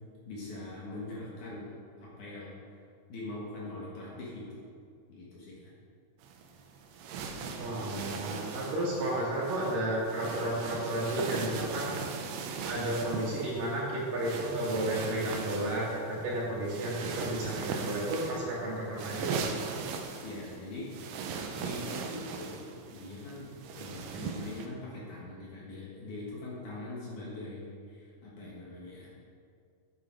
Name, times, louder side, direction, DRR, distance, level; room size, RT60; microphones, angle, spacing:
voice 1, 0.3-1.7 2.0-2.5 3.1-4.6 5.1-5.7 20.2-29.1, left 2 dB, 60° left, -6 dB, 2.7 m, -42 dB
sound 1, 6.2-24.7, right 5 dB, 85° right, 2.8 m, -39 dB
voice 2, 7.6-11.9 12.6-19.4, right 1 dB, 60° right, -5 dB, 3.4 m, -32 dB
9.6 x 9.0 x 4.5 m, 2.3 s
omnidirectional pair, 4.7 m